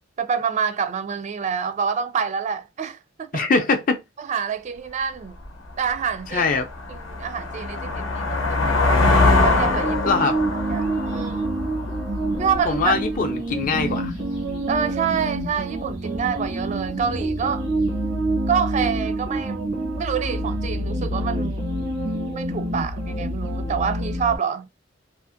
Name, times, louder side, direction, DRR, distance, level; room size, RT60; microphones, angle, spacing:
voice 1, 0.2-3.5 4.2-5.3 5.8-6.5 6.9-10.2 10.7-11.6 12.4-12.9 14.7-17.6 18.5-19.7 20.0-21.7 22.3-24.7, right 7 dB, 35° right, 0.3 m, -27 dB
voice 2, 3.3-4.0 6.3-6.7 10.1-10.4 12.6-14.1, left 4 dB, 45° left, 0.5 m, -22 dB
sound 1, 5.4-5.5 6.0-12.6, left 3 dB, 90° left, 0.7 m, -22 dB
sound 2, 9.6-24.4, right 1 dB, 80° right, 1.2 m, -27 dB
2.5 x 2.4 x 2.5 m
head